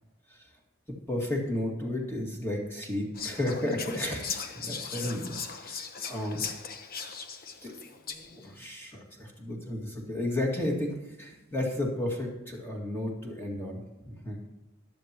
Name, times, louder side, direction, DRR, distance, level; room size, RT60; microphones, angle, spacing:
voice 1, 1.1-5.3 5.6-5.8 6.1-6.5 7.6-7.8 8.1-14.5, left 1 dB, 10° left, 0 dB, 2.0 m, -33 dB
Whispering, 3.1-8.5, left 6 dB, 45° left, 0.9 m, -38 dB
14.0 x 11.0 x 2.9 m, 1.0 s
head